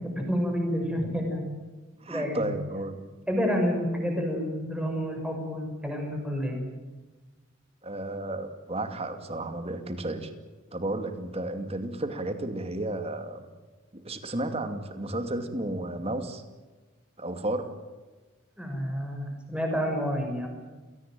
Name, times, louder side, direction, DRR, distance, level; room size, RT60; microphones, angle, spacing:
voice 1, 0.0-1.4 2.1-2.5 3.3-6.7 18.6-20.5, equal, 5° right, 2 dB, 6.1 m, -29 dB
voice 2, 2.0-3.0 7.8-10.3 10.7-13.5 13.9-16.4 17.2-17.7, right 1 dB, 30° right, 8 dB, 2.5 m, -33 dB
29.5 x 18.0 x 9.2 m, 1.2 s
head